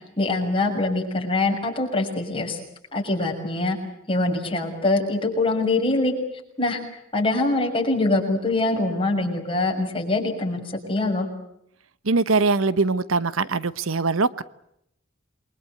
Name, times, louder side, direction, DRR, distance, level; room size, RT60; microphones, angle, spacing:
voice 1, 0.2-2.6 2.9-3.8 4.1-6.1 6.6-6.8 7.1-11.3, left 2 dB, 25° left, 1 dB, 6.6 m, -23 dB
voice 2, 12.0-14.4, right 3 dB, 80° right, 15 dB, 1.0 m, -22 dB
28.5 x 23.0 x 8.1 m, 0.76 s
head